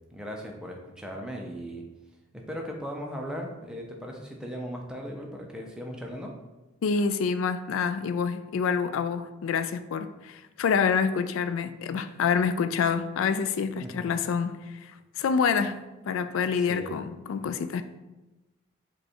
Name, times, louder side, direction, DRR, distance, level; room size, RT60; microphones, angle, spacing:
voice 1, 0.1-1.9 2.3-6.4 13.8-13.9 16.7-17.0, equal, 5° right, 0 dB, 0.5 m, -37 dB
voice 2, 6.8-15.8 16.1-17.8, left 6 dB, 65° left, 10 dB, 0.3 m, -27 dB
5.3 x 2.3 x 4.3 m, 1.1 s
head